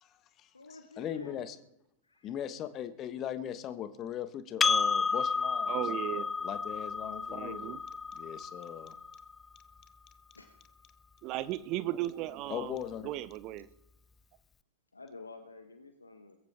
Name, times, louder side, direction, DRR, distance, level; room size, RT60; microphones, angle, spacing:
voice 1, 0.0-1.5 2.2-5.8 6.4-7.7 8.1-8.9 12.5-13.1, left 10 dB, 30° left, 12 dB, 1.2 m, -39 dB
voice 2, 0.5-1.4 2.0-2.3 4.7-5.4 10.3-10.5 14.9-16.4, left 3 dB, 80° left, 7 dB, 1.2 m, -50 dB
Percussion, 4.6-9.4, left 5 dB, 15° left, 0.4 m, -31 dB
voice 3, 5.7-6.3 7.3-7.8 11.2-12.8 13.0-13.7, right 15 dB, 40° right, 17 dB, 0.7 m, -36 dB
22.0 x 14.5 x 3.6 m, 0.80 s
figure-of-eight pair, 90°, 0 cm